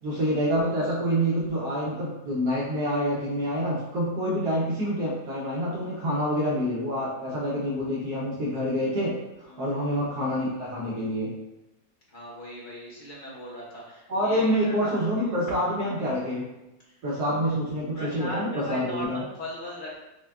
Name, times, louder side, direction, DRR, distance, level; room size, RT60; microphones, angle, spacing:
voice 1, 0.0-11.4 14.1-16.4 17.0-19.2, equal, 70° right, -6 dB, 1.3 m, -27 dB
voice 2, 9.5-10.3 12.1-15.8 16.8-17.0 17.9-20.0, equal, 65° left, -6 dB, 0.4 m, -39 dB
6.0 x 2.2 x 2.3 m, 0.95 s
omnidirectional pair, 1.9 m